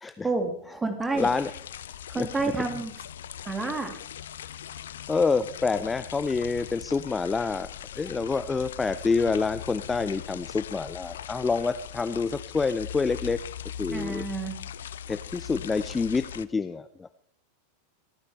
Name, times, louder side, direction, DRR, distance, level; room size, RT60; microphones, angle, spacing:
voice 1, 0.2-1.3 2.1-2.9 3.4-3.9 13.9-14.6, right 3 dB, 15° right, 7 dB, 2.1 m, -29 dB
voice 2, 1.1-1.5 2.2-2.3 5.1-7.7 8.0-13.4 13.8-14.2 15.1-17.1, left 4 dB, 15° left, 13 dB, 0.5 m, -27 dB
sound 1, 1.2-16.5, left 9 dB, 60° left, 0.5 m, -40 dB
26.5 x 9.8 x 3.3 m, 0.62 s
figure-of-eight pair, 90°, 0 cm